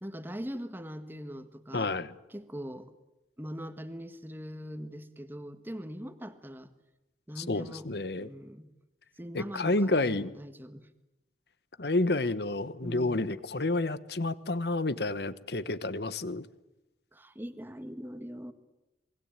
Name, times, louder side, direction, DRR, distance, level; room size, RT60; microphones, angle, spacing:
voice 1, 0.0-1.9 2.3-2.9 3.4-6.7 7.3-7.9 8.2-8.7 9.2-10.9 12.8-13.2 17.1-18.5, equal, 10° right, 9 dB, 1.6 m, -41 dB
voice 2, 1.7-2.1 7.4-8.3 9.3-10.3 11.8-16.4, left 2 dB, 65° left, 16 dB, 1.1 m, -30 dB
27.0 x 21.5 x 9.0 m, 0.97 s
head